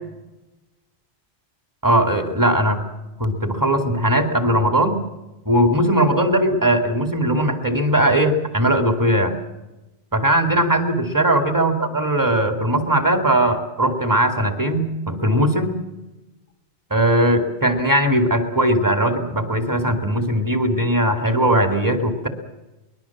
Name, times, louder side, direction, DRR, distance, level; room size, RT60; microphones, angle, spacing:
voice 1, 1.8-2.8 3.2-5.0 5.5-9.3 10.1-15.8 16.9-22.3, right 1 dB, 20° right, 5 dB, 2.6 m, -19 dB
23.5 x 21.0 x 7.4 m, 1.0 s
omnidirectional pair, 1.1 m